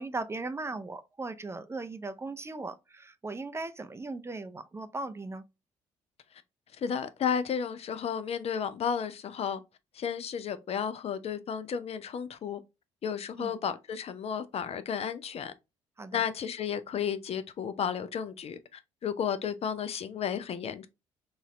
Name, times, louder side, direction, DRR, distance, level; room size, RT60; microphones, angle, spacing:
voice 1, 0.0-5.4 13.4-13.5 16.0-16.2, right 3 dB, 15° right, 0.5 m, -38 dB
voice 2, 6.8-9.6 9.9-12.6 13.0-15.5 16.1-20.9, left 7 dB, 40° left, 0.5 m, -33 dB
4.0 x 2.4 x 3.0 m
figure-of-eight pair, 45°, 15 cm